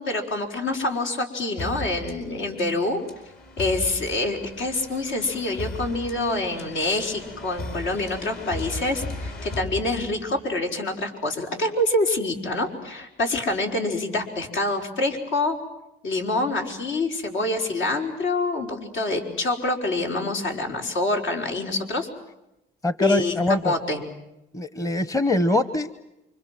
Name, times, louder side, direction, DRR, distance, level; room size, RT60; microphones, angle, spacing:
voice 1, 0.0-3.0 3.6-15.6 16.0-22.1 23.0-23.4 23.6-24.0, left 2 dB, 75° left, 3 dB, 5.4 m, -26 dB
sound 1, 1.6-10.4, left 2 dB, 55° left, 4.9 m, -37 dB
voice 2, 22.8-23.7 24.5-25.9, left 2 dB, 15° left, 14 dB, 1.1 m, -23 dB
29.0 x 25.0 x 7.8 m, 0.90 s
cardioid pair, 115°, 20 cm